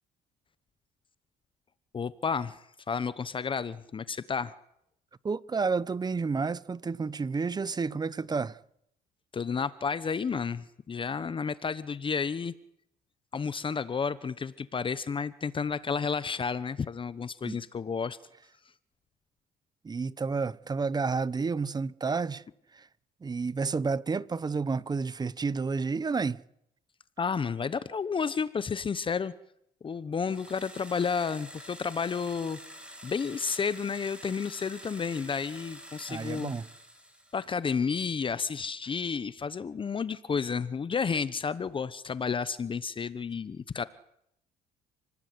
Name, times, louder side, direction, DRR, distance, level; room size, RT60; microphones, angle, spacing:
voice 1, 1.9-4.5 9.3-12.5 13.3-18.2 27.2-29.3 29.8-32.6 33.0-36.5 37.3-43.8, left 5 dB, 30° left, 1.0 m, -31 dB
voice 2, 5.2-8.6 17.4-17.6 19.8-22.4 22.7-22.9 23.2-26.4 36.1-36.7, right 4 dB, 25° right, 1.0 m, -30 dB
sound 1, 30.2-37.6, equal, 5° right, 6.1 m, -48 dB
29.0 x 19.5 x 9.7 m
cardioid pair, 110°, 17 cm